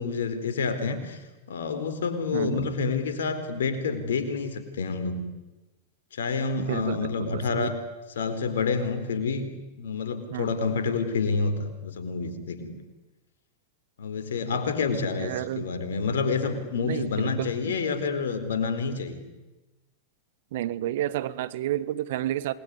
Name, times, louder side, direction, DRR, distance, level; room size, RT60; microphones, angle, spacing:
voice 1, 0.0-5.2 6.1-7.8 8.2-9.5 9.8-12.7 14.0-19.2, left 5 dB, 80° left, 9 dB, 4.4 m, -28 dB
voice 2, 2.3-2.7 6.7-7.7 10.3-10.5 15.2-15.7 16.8-17.7 20.5-22.5, right 13 dB, 65° right, 17 dB, 1.5 m, -31 dB
28.0 x 21.5 x 9.8 m, 1.1 s
hypercardioid pair, 100°, 0 cm